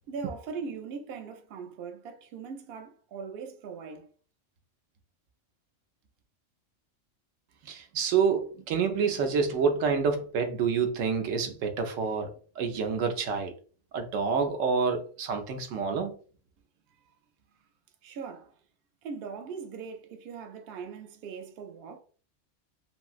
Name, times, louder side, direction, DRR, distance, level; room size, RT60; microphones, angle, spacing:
voice 1, 0.1-4.1 16.9-17.2 18.0-18.5 19.0-22.0, right 5 dB, 60° right, 0.7 m, -40 dB
voice 2, 7.6-12.3 12.6-13.5 13.9-16.1, right 5 dB, 85° right, 1.0 m, -28 dB
2.9 x 2.6 x 2.4 m
omnidirectional pair, 1.3 m